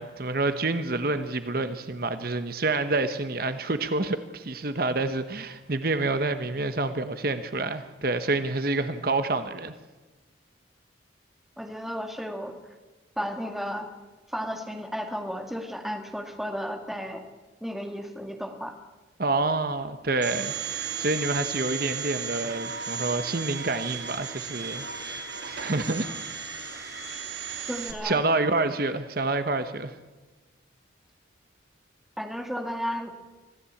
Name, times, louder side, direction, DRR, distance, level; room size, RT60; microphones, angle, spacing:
voice 1, 0.0-9.7 19.2-26.1 28.0-30.0, right 2 dB, 50° right, 9 dB, 1.0 m, -28 dB
voice 2, 11.6-12.5 13.2-13.9 14.3-17.2 17.6-18.7 27.7-28.2 32.2-33.1, equal, ahead, 3 dB, 2.0 m, -33 dB
Domestic sounds home sounds, 20.2-27.9, right 6 dB, 65° right, 3.0 m, -35 dB
25.0 x 16.0 x 8.5 m, 1.2 s
head